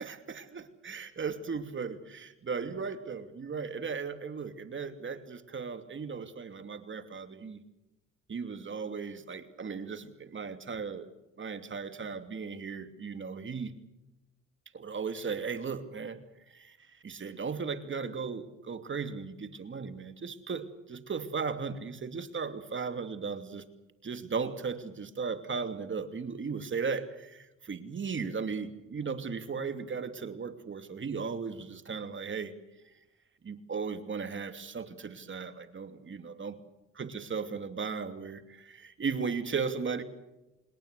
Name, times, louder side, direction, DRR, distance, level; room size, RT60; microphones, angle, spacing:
voice 1, 0.0-7.6 8.3-11.1 11.4-13.7 14.7-16.2 16.5-23.6 24.0-32.5 33.4-36.6 37.0-40.0, right 5 dB, 40° right, 9 dB, 2.7 m, -36 dB
27.5 x 21.0 x 6.8 m, 0.96 s
cardioid pair, 90°, 30 cm